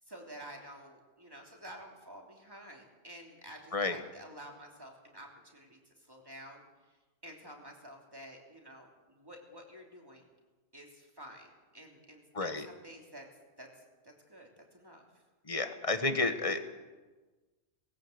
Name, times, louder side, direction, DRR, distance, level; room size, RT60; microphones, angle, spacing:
voice 1, 0.1-6.6 7.2-10.3 10.7-13.3 13.6-15.0, equal, 20° right, 0 dB, 3.3 m, -51 dB
voice 2, 12.3-12.7 15.5-16.6, left 3 dB, 30° left, 8 dB, 1.5 m, -31 dB
19.0 x 17.0 x 8.0 m, 1.3 s
omnidirectional pair, 1.1 m